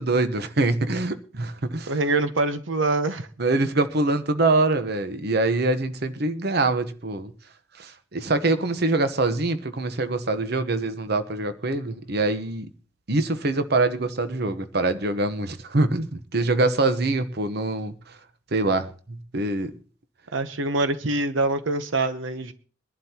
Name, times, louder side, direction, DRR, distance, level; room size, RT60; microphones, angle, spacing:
voice 1, 0.0-1.9 3.4-7.3 7.8-12.7 13.1-17.9 18.5-19.7, right 2 dB, 55° right, 1.0 m, -24 dB
voice 2, 1.9-3.3 20.3-22.5, right 2 dB, 80° right, 0.9 m, -24 dB
22.5 x 11.5 x 2.9 m
head